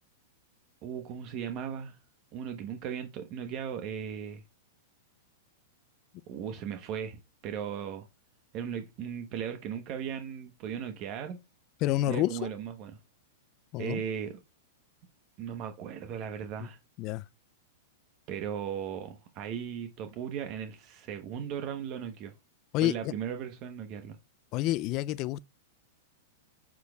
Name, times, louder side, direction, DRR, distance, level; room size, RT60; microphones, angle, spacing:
voice 1, 0.8-2.0 2.3-4.4 6.3-8.1 8.5-11.4 12.1-12.9 13.8-14.4 15.4-16.8 18.3-22.3 22.8-24.2, right 8 dB, 45° right, 1.0 m, -37 dB
voice 2, 11.8-12.5 13.7-14.0 17.0-17.2 22.7-23.1 24.5-25.4, left 15 dB, 45° left, 0.4 m, -29 dB
8.2 x 6.2 x 2.3 m
hypercardioid pair, 115°, 0 cm